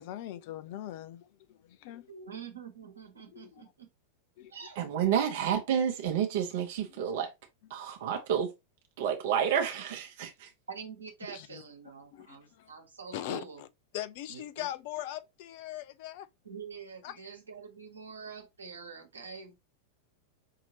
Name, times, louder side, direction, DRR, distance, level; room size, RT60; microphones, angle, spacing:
voice 1, 0.0-2.1 3.3-3.7 4.4-4.5 6.9-7.2 11.3-11.6 12.1-12.7 13.1-13.7 13.9-16.3 17.0-17.3, left 13 dB, 50° left, 0.4 m, -41 dB
voice 2, 2.1-3.9 4.5-4.8 8.0-8.1 10.7-13.6 14.3-14.7 16.4-19.6, right 6 dB, 75° right, 1.2 m, -46 dB
voice 3, 4.8-7.3 7.7-8.5 9.0-10.5, right 8 dB, 55° right, 0.8 m, -29 dB
5.5 x 2.8 x 2.8 m
figure-of-eight pair, 90°, 0 cm